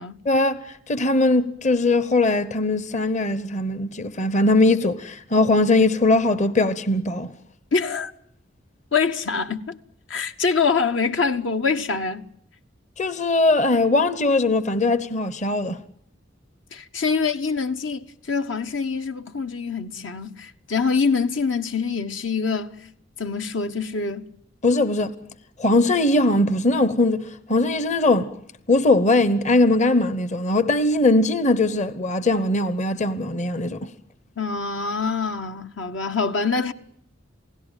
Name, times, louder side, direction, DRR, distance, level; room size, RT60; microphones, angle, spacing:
voice 1, 0.2-7.3 13.0-15.8 24.6-25.1 25.6-28.3 28.7-33.9, left 2 dB, 40° left, 1.0 m, -20 dB
voice 2, 7.7-8.1 8.9-9.8 10.1-12.3 16.7-22.9 23.2-24.3 34.4-36.7, left 5 dB, 70° left, 1.3 m, -25 dB
28.5 x 17.0 x 9.1 m
head